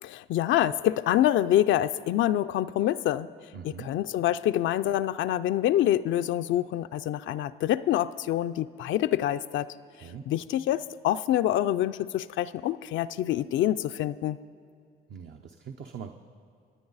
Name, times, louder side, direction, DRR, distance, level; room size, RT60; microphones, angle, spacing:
voice 1, 0.0-3.3 3.6-9.7 10.3-14.4, left 12 dB, 75° left, 11 dB, 0.4 m, -26 dB
voice 2, 3.5-3.9 9.9-10.2 15.1-16.1, right 7 dB, 60° right, 5 dB, 0.8 m, -42 dB
26.5 x 9.3 x 4.0 m, 2.5 s
cardioid pair, 90°, 20 cm